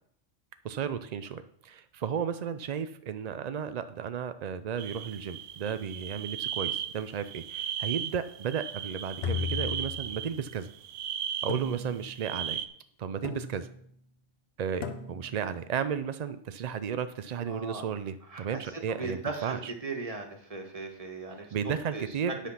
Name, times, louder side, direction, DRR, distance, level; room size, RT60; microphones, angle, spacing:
voice 1, 0.6-10.7 11.4-12.6 13.0-13.7 14.6-19.7 21.4-22.4, right 7 dB, 65° right, 11 dB, 0.4 m, -34 dB
sound 1, 4.8-12.7, right 9 dB, 90° right, 1.0 m, -36 dB
sound 2, 9.2-10.4 11.5-12.3 13.2-13.9 14.8-15.5, left 6 dB, 60° left, 1.0 m, -36 dB
voice 2, 17.5-17.8 18.3-22.0, right 3 dB, 30° right, 3 dB, 1.5 m, -38 dB
10.0 x 5.8 x 5.7 m, 0.67 s
omnidirectional pair, 1.3 m